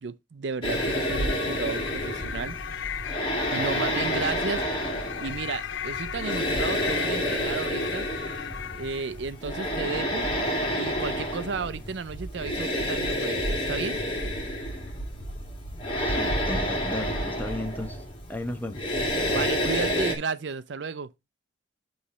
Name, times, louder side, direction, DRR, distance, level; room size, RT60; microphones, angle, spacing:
voice 1, 0.0-2.6 3.5-4.6 5.2-8.1 8.7-10.3 10.8-14.0 19.3-21.1, right 5 dB, 75° right, 0.5 m, -33 dB
sound 1, 0.6-9.2, left 8 dB, 85° left, 0.5 m, -36 dB
sound 2, 0.6-20.1, equal, 25° left, 1.8 m, -29 dB
voice 2, 16.0-18.0 18.3-18.8, left 1 dB, 10° left, 0.9 m, -34 dB
8.5 x 3.2 x 5.0 m
head